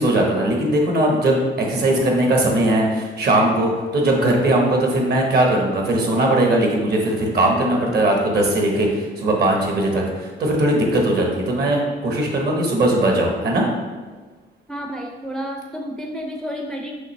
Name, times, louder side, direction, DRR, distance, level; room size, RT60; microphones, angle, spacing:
voice 1, 0.0-13.7, right 1 dB, 55° right, 1 dB, 1.1 m, -19 dB
voice 2, 14.7-17.0, equal, ahead, 1 dB, 0.4 m, -30 dB
5.7 x 2.8 x 3.2 m, 1.4 s
cardioid pair, 90°, 20 cm